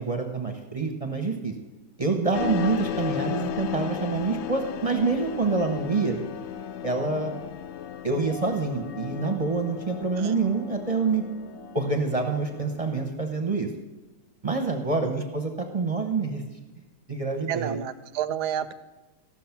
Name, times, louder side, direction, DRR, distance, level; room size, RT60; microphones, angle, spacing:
voice 1, 0.0-1.5 2.0-6.2 6.8-7.4 8.0-11.2 11.7-13.7 14.4-16.4 17.1-17.8, right 4 dB, 30° right, 4 dB, 0.7 m, -26 dB
sound 1, 2.3-13.1, left 9 dB, 90° left, 0.6 m, -35 dB
voice 2, 17.5-18.7, right 9 dB, 80° right, 13 dB, 1.2 m, -30 dB
15.0 x 6.1 x 5.9 m, 1.1 s
omnidirectional pair, 1.7 m